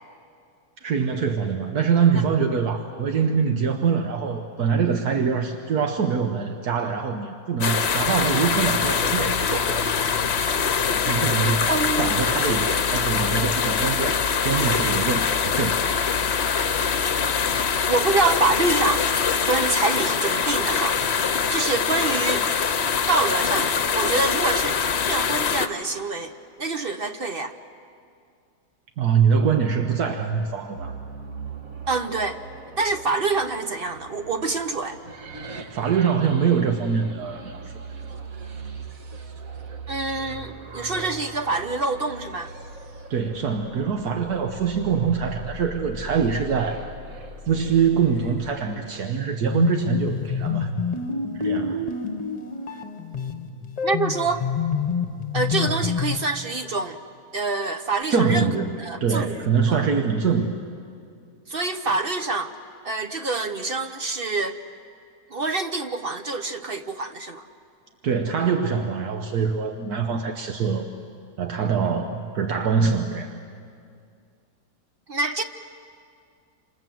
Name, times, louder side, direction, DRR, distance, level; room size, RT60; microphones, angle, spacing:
voice 1, 0.8-9.8 11.1-11.7 12.0-15.9 29.0-31.0 35.7-37.6 43.1-46.8 47.5-50.7 51.3-51.8 58.1-60.6 68.0-70.9 71.4-73.4, right 6 dB, 80° right, 5 dB, 1.6 m, -24 dB
sound 1, 7.6-25.7, left 6 dB, 50° left, 1.1 m, -23 dB
voice 2, 11.7-12.1 17.9-19.1 19.5-21.0 21.5-22.5 23.1-24.8 25.1-26.3 26.6-27.5 31.9-32.4 32.8-35.0 39.9-42.5 53.8-54.5 55.3-57.0 57.3-58.5 58.8-59.8 61.5-62.5 62.8-64.6 65.3-67.4 75.1-75.4, right 3 dB, 45° right, 8 dB, 0.9 m, -26 dB
sound 2, 30.7-48.5, right 3 dB, 60° right, 1.9 m, -40 dB
sound 3, 49.4-56.3, left 5 dB, 25° left, 1.3 m, -27 dB
27.5 x 27.5 x 7.7 m, 2.3 s
omnidirectional pair, 1.6 m